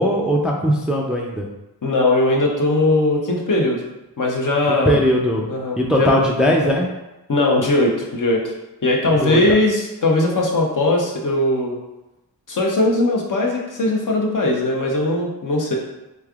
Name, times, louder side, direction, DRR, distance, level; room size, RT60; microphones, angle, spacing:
voice 1, 0.0-1.5 4.9-5.4 5.8-6.9 9.2-9.4, equal, ahead, -1 dB, 0.4 m, -19 dB
voice 2, 1.8-3.8 4.2-5.0 5.5-6.1 7.3-8.5 8.8-11.8 12.5-15.8, left 2 dB, 50° left, -1 dB, 0.8 m, -19 dB
3.5 x 3.2 x 2.4 m, 0.99 s
cardioid pair, 50°, 39 cm